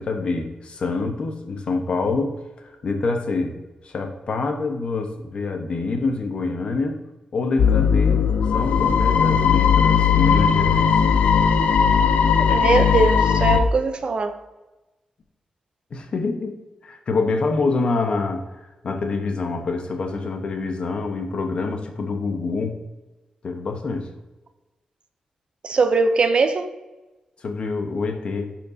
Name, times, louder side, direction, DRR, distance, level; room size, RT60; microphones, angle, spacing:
voice 1, 0.0-3.6 3.8-7.0 7.3-8.3 8.5-10.9 15.9-16.6 16.8-22.8 23.4-24.1 27.4-28.5, left 3 dB, 50° left, 1.0 m, -26 dB
sound 1, 7.6-13.6, left 7 dB, 80° left, 0.4 m, -18 dB
voice 2, 12.4-14.4 25.6-26.7, right 4 dB, 45° right, 0.6 m, -21 dB
10.5 x 4.4 x 2.7 m
wide cardioid pair, 120°, 2 cm